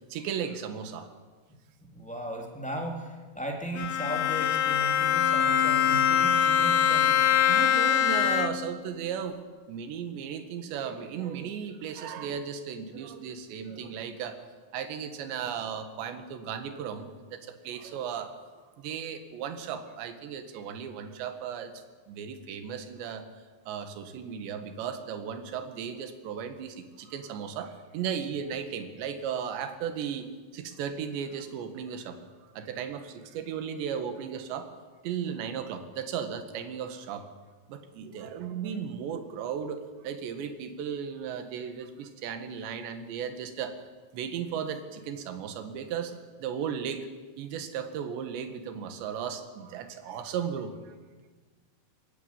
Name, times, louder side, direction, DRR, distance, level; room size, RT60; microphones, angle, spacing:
voice 1, 0.1-1.1 7.5-9.4 9.7-18.3 18.8-21.7 22.1-23.3 23.7-30.3 30.5-32.2 32.6-34.7 35.0-37.3 37.7-43.8 44.1-47.1 47.4-50.9, right 7 dB, 70° right, 8 dB, 3.8 m, -35 dB
voice 2, 1.8-7.2, right 1 dB, ahead, 1 dB, 2.2 m, -36 dB
Bowed string instrument, 3.7-8.8, left 9 dB, 85° left, 3.7 m, -23 dB
22.0 x 16.5 x 10.0 m, 1.4 s
omnidirectional pair, 5.5 m